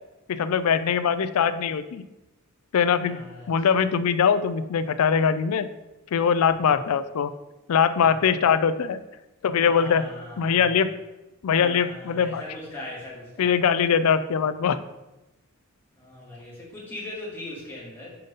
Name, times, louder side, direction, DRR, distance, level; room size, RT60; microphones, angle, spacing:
voice 1, 0.3-2.0 2.7-5.7 6.1-7.3 7.7-9.0 9.4-10.1 10.4-10.9 11.4-12.4 13.4-14.8, left 7 dB, 75° left, 12 dB, 0.4 m, -22 dB
voice 2, 3.1-3.5 8.0-8.1 9.7-10.8 11.5-13.5 16.0-18.1, left 1 dB, 10° left, -7 dB, 2.0 m, -39 dB
5.7 x 3.8 x 5.2 m, 0.99 s
head